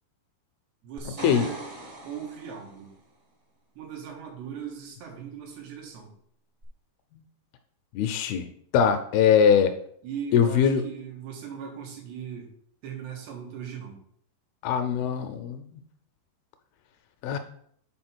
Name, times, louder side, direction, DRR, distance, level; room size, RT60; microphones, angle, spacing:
voice 1, 0.8-1.6 2.0-2.9 3.8-6.1 10.0-12.5 12.8-14.0, right 7 dB, 85° right, 0 dB, 3.8 m, -38 dB
sound 1, 1.0-2.9 6.6-6.7, right 2 dB, 45° right, 1.0 m, -41 dB
voice 2, 8.0-8.5 8.7-9.7 10.3-10.8 14.6-15.8 17.2-17.4, left 7 dB, 80° left, 8 dB, 2.4 m, -22 dB
7.9 x 4.1 x 6.1 m, 0.66 s
omnidirectional pair, 4.6 m